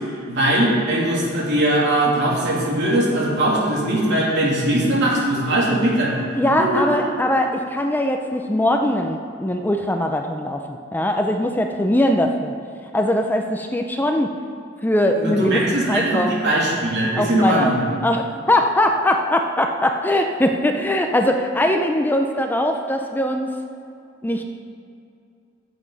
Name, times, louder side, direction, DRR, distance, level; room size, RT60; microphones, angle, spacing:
voice 1, 0.3-6.1 6.6-7.0 15.1-17.8, right 1 dB, 60° right, -5 dB, 2.9 m, -20 dB
voice 2, 6.4-12.5 12.9-14.3 14.8-15.6 15.9-16.4 17.2-17.7 18.0-23.5 24.2-24.4, left 1 dB, 10° left, 4 dB, 0.5 m, -21 dB
13.5 x 7.8 x 4.0 m, 2.5 s
head